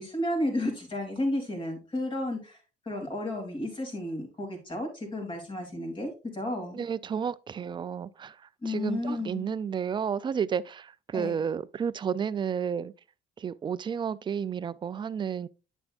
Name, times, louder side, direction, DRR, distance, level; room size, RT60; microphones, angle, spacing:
voice 1, 0.0-2.6 2.8-6.8 8.6-9.5 11.1-11.4, left 1 dB, 30° left, 3.1 m, -32 dB
voice 2, 6.7-8.3 8.7-12.9 13.4-15.5, right 7 dB, 30° right, 0.4 m, -31 dB
9.2 x 6.9 x 2.5 m
cardioid pair, 110°, 17 cm